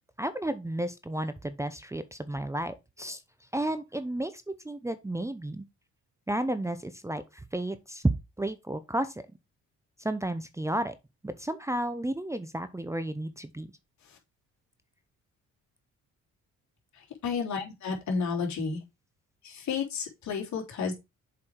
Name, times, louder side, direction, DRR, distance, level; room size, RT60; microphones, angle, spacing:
voice 1, 0.2-3.2 3.5-5.6 6.3-8.1 8.4-9.2 10.0-10.9 11.2-13.7, right 1 dB, 10° right, 0.7 m, -32 dB
voice 2, 17.0-18.8 19.4-20.9, left 5 dB, 65° left, 3.3 m, -32 dB
7.5 x 4.8 x 4.6 m
cardioid pair, 90°, 30 cm